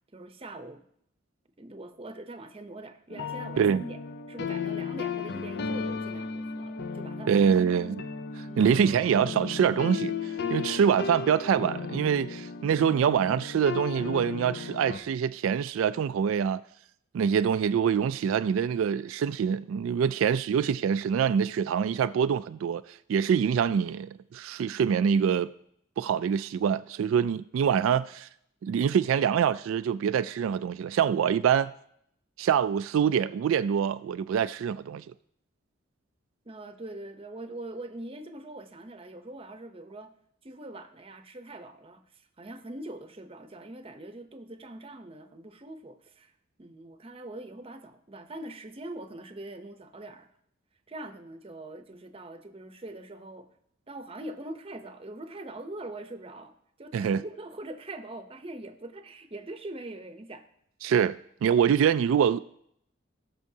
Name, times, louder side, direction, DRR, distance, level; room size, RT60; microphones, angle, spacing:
voice 1, 0.1-0.8 1.6-4.0 4.3-7.6 8.5-8.8 36.4-40.1 40.4-46.3 46.6-50.3 50.9-53.5 53.9-60.5, right 2 dB, 30° right, 0.7 m, -43 dB
sound 1, 3.1-15.0, left 5 dB, 55° left, 0.5 m, -35 dB
voice 2, 7.3-7.9 8.4-16.6 17.1-25.5 26.0-28.3 28.6-31.7 32.4-35.0 56.9-57.2 60.8-62.4, right 7 dB, 90° right, 0.3 m, -25 dB
18.5 x 6.2 x 2.8 m
head